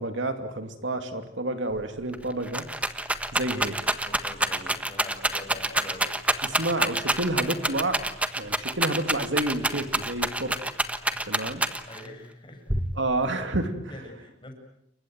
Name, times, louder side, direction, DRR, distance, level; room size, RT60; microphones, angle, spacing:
voice 1, 0.0-2.7 3.3-3.8 6.4-7.9 8.4-10.7 11.3-11.6 13.0-13.7, right 2 dB, 70° right, 7 dB, 2.7 m, -29 dB
Rattle, 1.8-1.9 2.1-12.1 12.7-13.3, right 1 dB, 5° right, 1.3 m, -27 dB
voice 2, 4.0-6.1 7.3-7.6 11.1-11.4 11.9-12.7 13.9-14.5, left 1 dB, 25° left, 3 dB, 7.2 m, -44 dB
29.0 x 24.0 x 7.8 m, 0.74 s
head